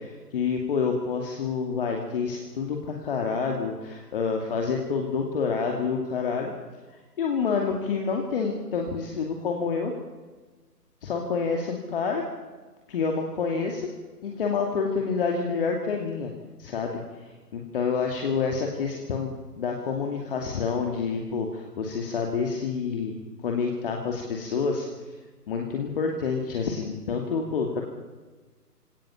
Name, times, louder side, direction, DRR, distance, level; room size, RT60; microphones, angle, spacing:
voice 1, 0.0-6.5 7.2-9.9 11.0-12.2 12.9-13.9 14.2-16.3 16.6-23.2 23.4-24.9 25.5-27.8, left 5 dB, 35° left, 2 dB, 2.6 m, -28 dB
26.0 x 18.0 x 7.5 m, 1.3 s
figure-of-eight pair, 140°, 47 cm